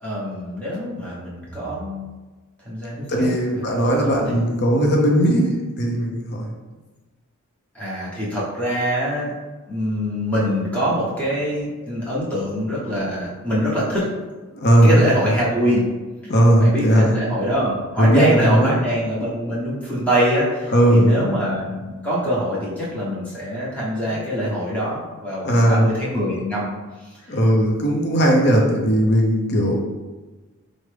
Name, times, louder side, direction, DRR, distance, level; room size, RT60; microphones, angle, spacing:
voice 1, 0.0-2.1 2.6-3.6 4.3-4.4 7.7-9.3 9.7-14.1 14.8-15.9 16.6-26.7 27.3-27.4, equal, 5° left, -7 dB, 0.9 m, -24 dB
voice 2, 3.1-5.5 5.8-6.5 14.5-14.9 16.3-17.2 18.0-18.8 20.7-21.3 24.1-24.2 25.4-25.8 27.3-29.7, right 1 dB, 50° left, 0 dB, 0.7 m, -17 dB
4.8 x 2.1 x 3.2 m, 1.2 s
head